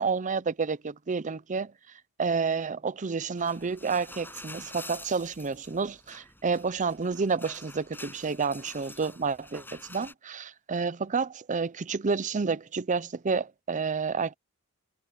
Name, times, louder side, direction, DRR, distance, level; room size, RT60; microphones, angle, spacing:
voice 1, 0.0-1.7 2.2-14.4, right 5 dB, 35° right, 0.6 m, -30 dB
sound 1, 3.4-10.1, left 2 dB, 10° left, 6.8 m, -47 dB
head